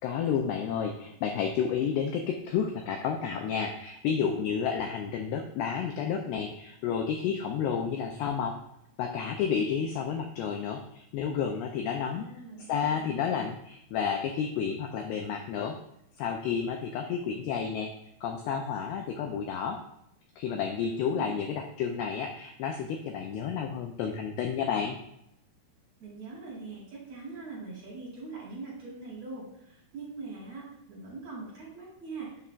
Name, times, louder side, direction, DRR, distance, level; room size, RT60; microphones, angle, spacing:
voice 1, 0.0-8.5 9.0-12.3 12.7-15.8 16.2-17.9 18.2-19.8 20.4-25.0, left 7 dB, 90° left, 3 dB, 2.2 m, -31 dB
voice 2, 12.1-13.1 20.8-21.4 26.0-32.3, right 3 dB, 45° right, -6 dB, 3.0 m, -42 dB
7.4 x 6.6 x 2.4 m, 0.77 s
omnidirectional pair, 5.1 m